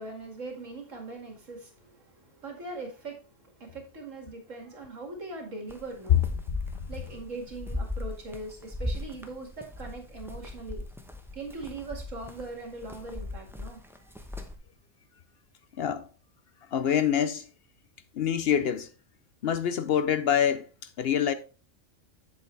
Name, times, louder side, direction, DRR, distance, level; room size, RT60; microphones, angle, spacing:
voice 1, 0.0-6.3 6.9-10.8 11.3-14.1, right 2 dB, 80° right, 2.6 m, -41 dB
sound 1, 5.7-14.6, left 2 dB, ahead, 0.7 m, -38 dB
voice 2, 15.8-16.1 16.6-17.5 18.1-18.9 19.4-21.3, left 9 dB, 60° left, 0.7 m, -26 dB
7.8 x 7.4 x 3.3 m
omnidirectional pair, 1.3 m